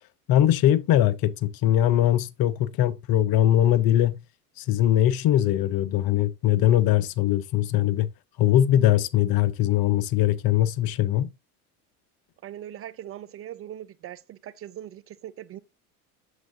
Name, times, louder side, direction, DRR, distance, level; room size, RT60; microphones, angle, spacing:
voice 1, 0.3-4.2 4.6-8.1 8.4-11.3, left 12 dB, 50° left, 0.9 m, -21 dB
voice 2, 12.4-15.6, right 11 dB, 30° right, 0.4 m, -40 dB
7.9 x 7.4 x 2.6 m
hypercardioid pair, 80°, 46 cm